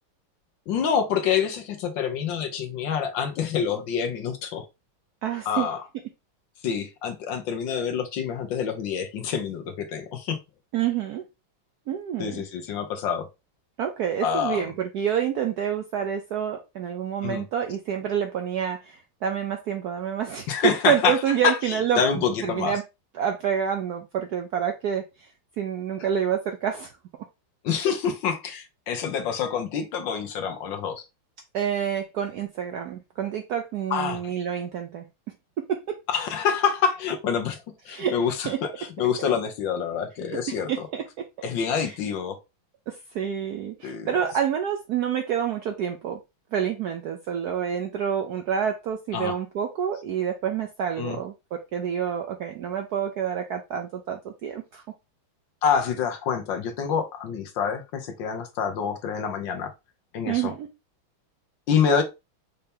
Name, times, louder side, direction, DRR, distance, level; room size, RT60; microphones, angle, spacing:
voice 1, 0.7-4.6 5.5-5.8 6.6-10.4 12.2-13.3 14.2-14.6 17.2-17.4 20.5-21.2 21.4-22.7 27.6-31.0 33.9-34.2 36.1-40.9 41.4-42.4 43.8-44.1 49.1-49.4 51.0-51.2 55.6-59.7 60.1-60.5 61.7-62.0, left 7 dB, 70° left, 1.5 m, -27 dB
voice 2, 5.2-5.7 10.7-11.2 11.9-12.4 13.8-20.5 20.8-22.8 23.1-25.3 25.6-26.9 31.5-35.0 35.7-36.0 37.9-38.1 38.5-38.6 40.5-41.2 41.8-41.9 42.9-46.2 46.5-54.8 60.3-60.7, right 8 dB, 75° right, 0.9 m, -28 dB
5.5 x 2.8 x 3.4 m
omnidirectional pair, 2.3 m